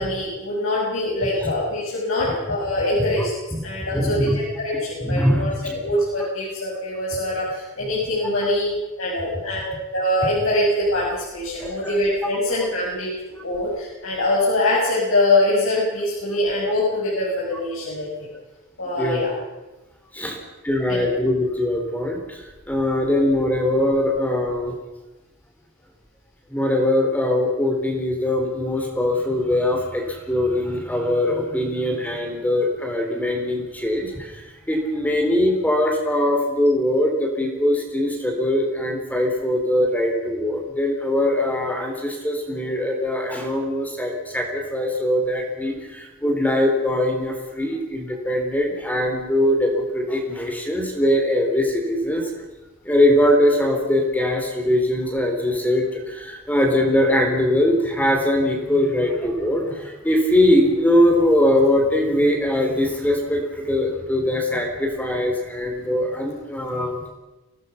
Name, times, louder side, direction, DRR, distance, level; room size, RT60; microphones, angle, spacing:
voice 1, 0.0-3.3 3.6-8.7 9.0-13.1 13.4-18.3 18.8-19.3 20.9-21.1, left 1 dB, 85° left, -5 dB, 6.4 m, -23 dB
voice 2, 3.9-4.4 5.0-5.8 11.6-11.9 19.0-19.2 20.1-20.4 20.6-22.4 22.7-24.7 26.5-34.4 34.7-52.3 52.8-67.1, left 1 dB, 10° left, 1 dB, 3.8 m, -21 dB
25.5 x 18.0 x 5.9 m, 1.1 s
head